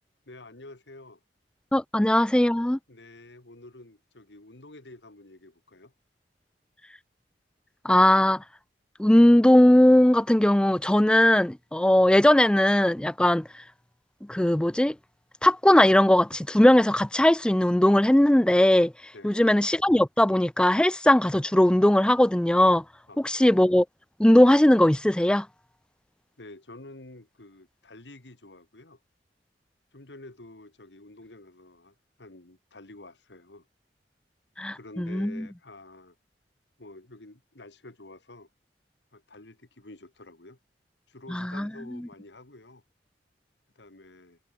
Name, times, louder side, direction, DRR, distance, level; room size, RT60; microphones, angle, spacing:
voice 1, 0.3-1.2 2.0-2.2 2.9-5.9 19.1-19.5 23.1-23.4 26.4-29.0 29.9-33.7 34.7-36.2 36.8-38.5 39.1-40.6 41.1-42.8 43.8-44.4, left 2 dB, 85° left, 2.3 m, -49 dB
voice 2, 1.7-2.8 7.8-8.4 9.0-13.5 14.3-14.9 15.4-18.9 19.2-22.8 23.2-23.9 24.2-25.5 34.6-35.4 41.3-41.7, left 1 dB, 5° left, 0.3 m, -19 dB
head